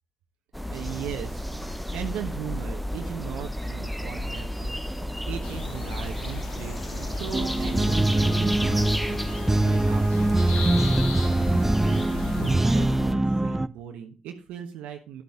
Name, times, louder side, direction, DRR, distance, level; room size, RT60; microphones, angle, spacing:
sound 1, 0.5-13.1, equal, ahead, 0.8 m, -32 dB
voice 1, 0.7-1.4 1.9-15.2, right 9 dB, 85° right, 4 dB, 1.1 m, -38 dB
sound 2, 5.4-12.5, left 5 dB, 85° left, 1.8 m, -37 dB
sound 3, 7.3-13.7, right 2 dB, 15° right, 0.5 m, -23 dB
10.0 x 8.2 x 3.6 m, 0.32 s
supercardioid pair, 50°, 2 cm